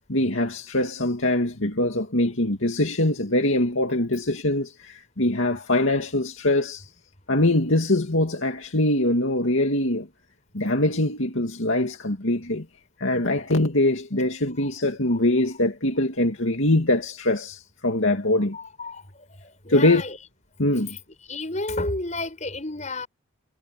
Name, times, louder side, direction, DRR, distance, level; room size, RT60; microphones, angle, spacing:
voice 1, 0.1-6.9 7.3-10.1 10.5-12.7 13.0-18.6 19.7-20.0 20.6-21.0, left 1 dB, 70° left, 2.4 m, -23 dB
voice 2, 18.5-19.0 19.4-20.2 21.3-23.1, left 2 dB, 35° left, 7.0 m, -31 dB
head